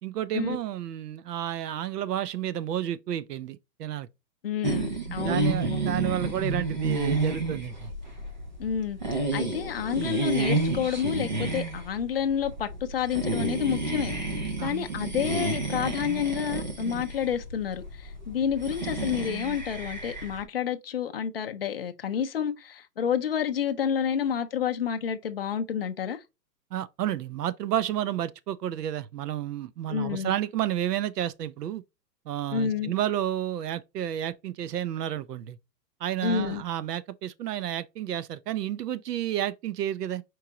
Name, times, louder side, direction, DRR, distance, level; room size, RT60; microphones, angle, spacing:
voice 1, 0.0-4.1 5.0-7.9 14.6-14.7 26.7-31.8 32.3-35.6 36.0-40.2, right 11 dB, 70° right, 0.7 m, -31 dB
voice 2, 4.4-5.8 8.6-14.1 14.6-26.2 29.9-30.3 32.5-32.9 36.2-36.6, left 8 dB, 40° left, 0.4 m, -29 dB
sound 1, 4.6-20.4, right 2 dB, 30° right, 0.4 m, -30 dB
4.6 x 3.7 x 2.8 m
hypercardioid pair, 160°, 50 cm